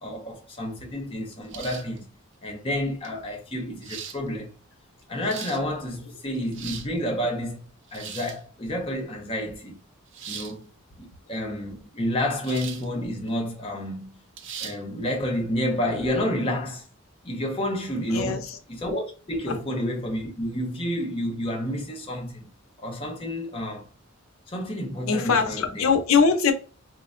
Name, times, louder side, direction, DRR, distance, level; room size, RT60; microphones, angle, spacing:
voice 1, 0.0-2.1 2.4-4.5 5.1-7.6 7.9-9.8 10.3-10.7 11.0-14.1 14.6-16.9 17.2-22.5 22.8-23.9 24.5-25.9, left 1 dB, 25° left, 0.6 m, -30 dB
sound 1, 1.5-2.0 3.0-3.1 3.8-4.2 5.0-5.6 6.4-6.9 7.9-8.4 10.1-10.5 12.4-12.9 13.3-13.4 14.4-14.8, right 7 dB, 60° right, 0.4 m, -38 dB
voice 2, 18.1-18.6 19.5-19.6 25.1-26.5, left 5 dB, 80° left, 0.7 m, -22 dB
4.3 x 2.1 x 2.4 m
head